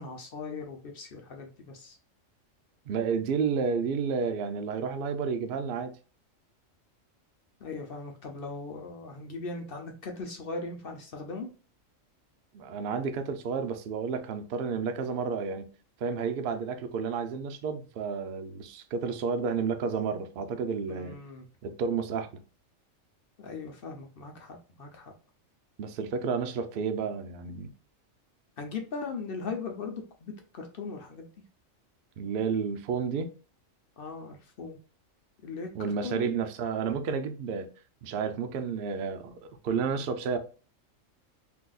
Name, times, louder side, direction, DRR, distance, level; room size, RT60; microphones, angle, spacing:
voice 1, 0.0-2.0 7.6-11.5 20.9-21.5 23.4-25.1 28.6-31.3 34.0-34.8 35.4-36.3, left 4 dB, 55° left, 0.8 m, -39 dB
voice 2, 2.9-6.0 12.5-15.7 16.0-21.2 21.6-22.4 25.8-27.7 32.2-33.3 35.7-37.7 38.0-40.4, right 5 dB, 65° right, 0.6 m, -31 dB
3.8 x 2.7 x 2.3 m
omnidirectional pair, 1.3 m